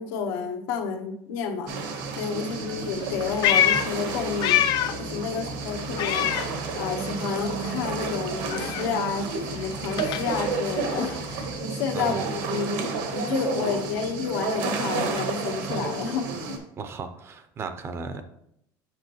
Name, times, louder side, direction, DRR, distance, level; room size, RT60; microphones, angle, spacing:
voice 1, 0.0-1.7 2.2-4.6 5.0-6.3 6.7-16.6, left 5 dB, 90° left, 3 dB, 1.0 m, -30 dB
sound 1, 1.7-16.6, right 4 dB, 75° right, 1.2 m, -31 dB
Meow, 3.0-5.1 5.4-7.1 7.4-11.6, left 11 dB, 40° left, 0.3 m, -27 dB
voice 2, 11.9-12.3 16.8-18.2, right 5 dB, 25° right, 9 dB, 0.5 m, -36 dB
7.9 x 6.1 x 3.0 m, 0.76 s
cardioid pair, 170°, 10 cm